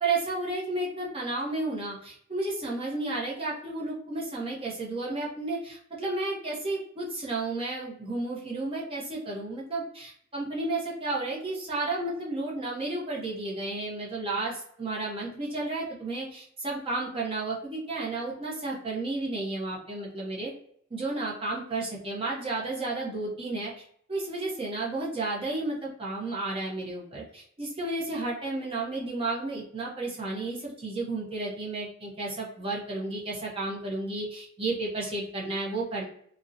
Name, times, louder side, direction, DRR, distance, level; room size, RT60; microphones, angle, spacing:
voice 1, 0.0-20.5 20.9-23.7 24.1-36.0, right 2 dB, 30° right, -4 dB, 0.6 m, -32 dB
2.7 x 2.0 x 2.4 m, 0.65 s
head